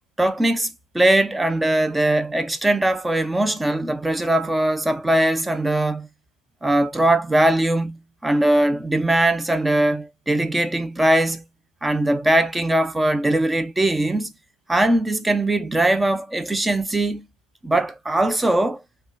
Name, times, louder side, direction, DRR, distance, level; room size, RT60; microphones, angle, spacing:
voice 1, 0.2-6.1 6.6-11.4 11.8-14.3 14.7-17.3 17.6-18.8, right 1 dB, 10° right, 0.3 m, -20 dB
3.6 x 2.1 x 2.4 m
supercardioid pair, 120°, 0 cm